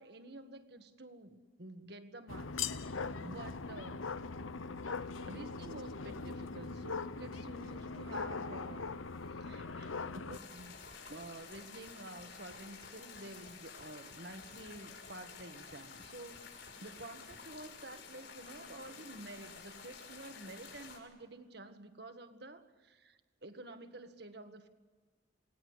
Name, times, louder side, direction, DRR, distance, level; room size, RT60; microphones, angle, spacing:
voice 1, 0.0-4.0 5.3-8.9 9.2-10.8 11.1-24.7, right 2 dB, 55° right, 8 dB, 1.8 m, -50 dB
sound 1, 2.3-10.4, left 4 dB, 90° left, 0.9 m, -41 dB
sound 2, 10.3-21.0, left 5 dB, 65° left, 6.4 m, -51 dB
28.0 x 19.5 x 8.1 m, 1.4 s
head